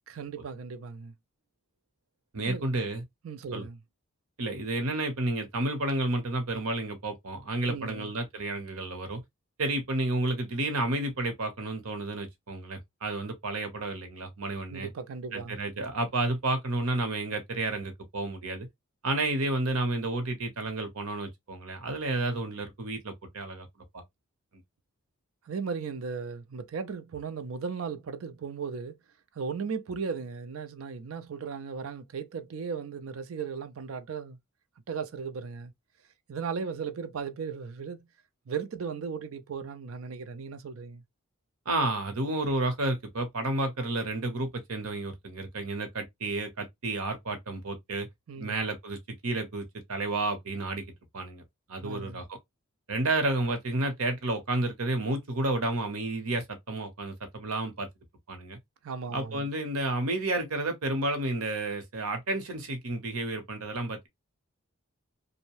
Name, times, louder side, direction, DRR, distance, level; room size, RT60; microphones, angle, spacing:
voice 1, 0.1-1.1 2.4-2.7 3.2-3.8 7.7-8.1 14.7-15.6 22.1-22.2 25.5-29.0 29.3-34.4 34.9-35.7 36.3-38.1 38.5-41.0 48.3-48.6 51.8-52.2 58.8-59.4, right 5 dB, 65° right, 0.4 m, -36 dB
voice 2, 2.3-3.0 3.5-3.7 4.4-9.2 9.6-14.9 15.3-18.7 19.0-23.7 23.9-24.0 24.5-24.6 41.7-48.1 48.4-51.4 51.7-52.4 52.9-57.9 58.3-58.6 59.1-64.1, right 2 dB, 85° right, 0.9 m, -31 dB
2.6 x 2.1 x 2.9 m
head